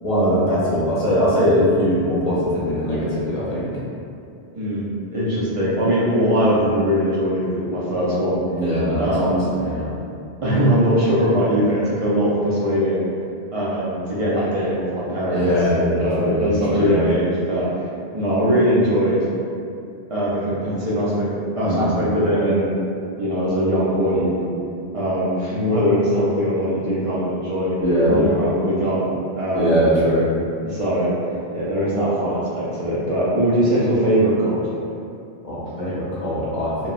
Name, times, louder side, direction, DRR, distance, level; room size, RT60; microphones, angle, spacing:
voice 1, 0.0-3.8 8.5-9.9 15.3-17.0 21.6-21.9 24.2-24.3 27.8-28.2 29.5-30.3 35.4-36.9, equal, 45° left, -9 dB, 0.6 m, -21 dB
voice 2, 4.6-8.5 9.0-9.4 10.4-13.1 13.5-15.5 15.9-17.7 18.1-19.3 20.1-21.3 21.6-22.7 23.2-24.4 24.9-27.8 28.1-29.7 30.6-31.1 31.5-34.6, equal, 55° right, -8 dB, 0.3 m, -21 dB
2.9 x 2.1 x 2.4 m, 2.5 s
omnidirectional pair, 1.1 m